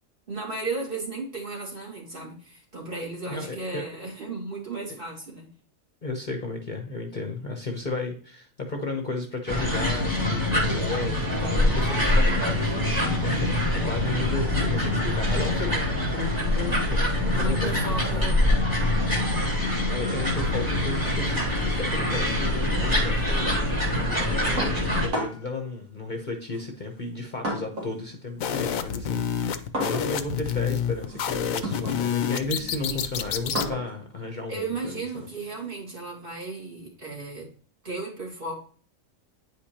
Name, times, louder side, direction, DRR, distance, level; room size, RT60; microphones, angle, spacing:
voice 1, 0.3-5.5 17.3-18.4 18.8-19.2 34.5-37.5 37.8-38.6, right 3 dB, 40° right, -2 dB, 2.4 m, -35 dB
voice 2, 3.3-3.8 4.9-5.0 6.0-18.2 19.9-35.3, left 3 dB, 40° left, 3 dB, 1.0 m, -34 dB
sound 1, 9.5-25.1, left 1 dB, 15° right, 2.0 m, -24 dB
sound 2, 24.6-25.6 26.5-28.0 28.3-35.7, right 1 dB, 85° right, 2.8 m, -35 dB
sound 3, 28.4-33.7, left 8 dB, 85° left, 1.1 m, -28 dB
9.3 x 5.0 x 2.8 m, 0.43 s
omnidirectional pair, 1.4 m